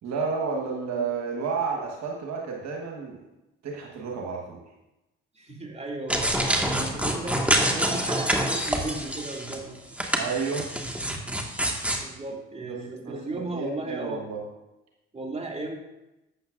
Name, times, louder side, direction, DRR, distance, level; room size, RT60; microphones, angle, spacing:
voice 1, 0.0-3.2 3.6-4.6 10.2-10.7 12.7-12.8 13.0-14.4, right 5 dB, 60° right, 0 dB, 1.5 m, -31 dB
voice 2, 5.3-10.0 12.0-14.2 15.1-15.8, right 2 dB, 20° right, 0 dB, 2.4 m, -36 dB
sound 1, 6.1-9.6 9.9-12.0, right 1 dB, 5° right, 1.7 m, -26 dB
11.5 x 8.3 x 2.5 m, 0.96 s
hypercardioid pair, 45°, 30 cm